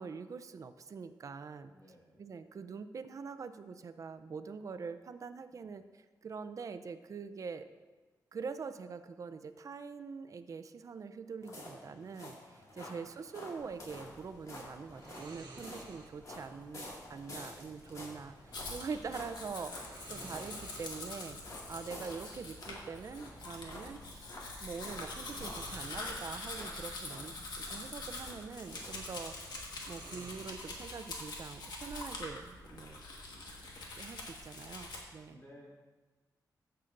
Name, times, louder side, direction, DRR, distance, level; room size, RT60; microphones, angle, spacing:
voice 1, 0.0-1.7 2.2-7.7 8.3-21.4 21.7-24.3 24.6-27.3 27.7-29.4 29.9-33.0 34.0-35.4, right 5 dB, 50° right, 11 dB, 0.5 m, -44 dB
voice 2, 1.5-2.2 5.5-5.7 12.8-13.1 35.3-35.7, equal, 35° left, -6 dB, 2.1 m, -60 dB
sound 1, 11.4-29.5 29.9-30.0 30.5-30.6, left 1 dB, 50° left, 2.0 m, -50 dB
sound 2, 13.6-32.0, right 3 dB, 80° right, 1.4 m, -56 dB
Domestic sounds home sounds, 18.5-35.0, left 2 dB, 80° left, 1.5 m, -45 dB
14.5 x 6.7 x 2.6 m, 1.2 s
wide cardioid pair, 115°, 7 cm